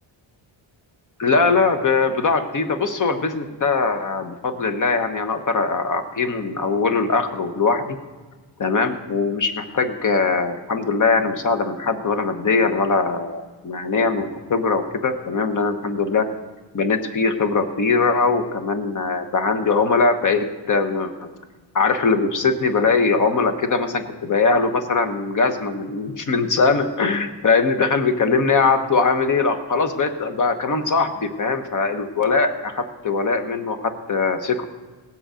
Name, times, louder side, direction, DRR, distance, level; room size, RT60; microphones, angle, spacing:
voice 1, 1.2-7.9 8.6-16.2 16.7-21.3 21.7-34.6, left 4 dB, 40° left, 8 dB, 1.1 m, -21 dB
18.5 x 8.0 x 5.0 m, 1.3 s
wide cardioid pair, 145°, 48 cm